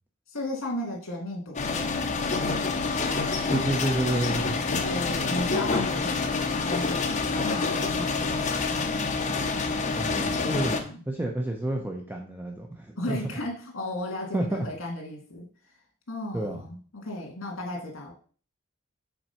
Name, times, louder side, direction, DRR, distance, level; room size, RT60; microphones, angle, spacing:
voice 1, 0.3-2.7 4.7-9.4 10.5-11.0 13.0-15.8 16.1-18.1, left 1 dB, 75° left, 1 dB, 2.1 m, -35 dB
sound 1, 1.6-10.8, left 4 dB, 35° left, 0.8 m, -27 dB
voice 2, 3.5-4.6 10.0-13.2 14.3-14.6 16.3-16.7, right 1 dB, 10° right, 1 dB, 0.7 m, -30 dB
5.9 x 4.1 x 5.6 m, 0.42 s
head